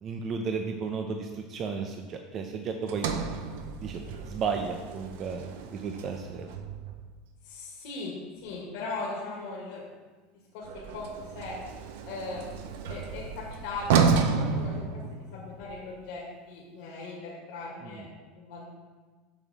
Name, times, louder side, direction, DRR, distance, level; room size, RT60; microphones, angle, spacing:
voice 1, 0.0-3.1 3.8-6.5 17.8-18.1, right 5 dB, 40° right, 4 dB, 0.6 m, -34 dB
Sliding door, 2.9-7.1 10.6-15.6, right 5 dB, 80° right, 0.7 m, -31 dB
voice 2, 7.4-8.1 8.4-9.8 10.5-11.6 12.1-12.6 12.9-18.1 18.4-18.7, left 3 dB, 70° left, -5 dB, 1.9 m, -39 dB
7.0 x 6.3 x 4.1 m, 1.4 s
supercardioid pair, 125°, 0 cm